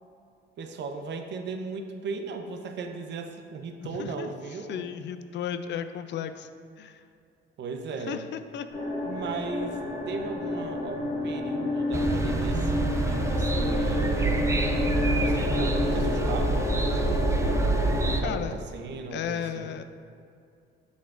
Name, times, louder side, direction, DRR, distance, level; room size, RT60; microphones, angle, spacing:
voice 1, 0.6-4.9 7.6-8.2 9.0-9.8 10.1-14.4 15.1-17.4 18.1-19.8, right 4 dB, 65° right, 5 dB, 0.7 m, -37 dB
voice 2, 3.8-4.3 4.7-6.5 6.8-7.0 8.0-8.7 18.2-18.5 19.1-19.8, left 9 dB, 65° left, 10 dB, 0.4 m, -34 dB
sound 1, 8.7-18.1, left 2 dB, 85° left, 1.3 m, -30 dB
sound 2, 11.9-18.2, right 3 dB, 15° right, 0.5 m, -27 dB
7.2 x 6.0 x 2.5 m, 2.4 s
cardioid pair, 90°, 20 cm